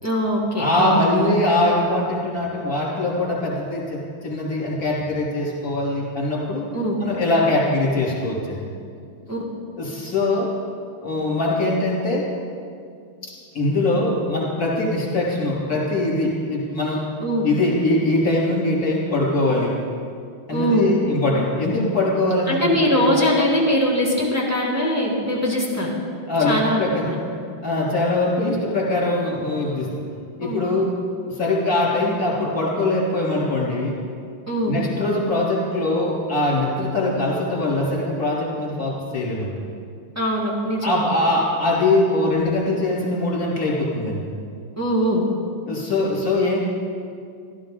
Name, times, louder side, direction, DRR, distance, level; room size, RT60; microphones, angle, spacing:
voice 1, 0.0-1.3 6.7-7.0 9.3-9.4 17.2-17.5 20.5-20.9 22.5-25.9 26.4-27.2 30.4-30.7 34.5-34.7 40.1-41.0 44.8-45.2, equal, 10° right, -5 dB, 1.7 m, -22 dB
voice 2, 0.5-6.6 7.0-8.6 9.8-10.5 11.0-12.2 13.2-17.0 17.4-19.7 20.5-23.1 26.3-27.1 27.6-29.9 30.4-30.9 31.3-33.9 34.7-39.6 40.8-44.3 45.7-46.6, left 2 dB, 40° left, -5 dB, 3.8 m, -22 dB
16.0 x 13.0 x 3.9 m, 2.3 s
omnidirectional pair, 2.4 m